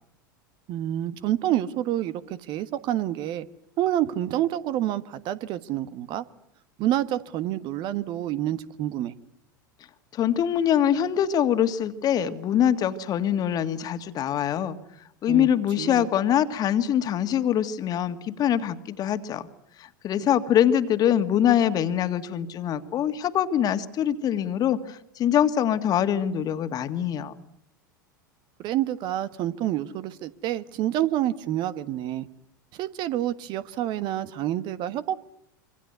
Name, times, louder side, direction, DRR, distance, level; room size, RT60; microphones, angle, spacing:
voice 1, 0.7-2.1 2.5-3.5 3.8-6.2 6.8-9.1 15.3-15.5 15.8-16.1 28.6-32.3 32.8-35.2, right 12 dB, 45° right, 14 dB, 1.3 m, -28 dB
voice 2, 10.1-14.8 15.2-19.5 19.8-27.3, left 10 dB, 35° left, 10 dB, 2.0 m, -24 dB
26.5 x 25.0 x 8.1 m, 0.72 s
figure-of-eight pair, 85°, 11 cm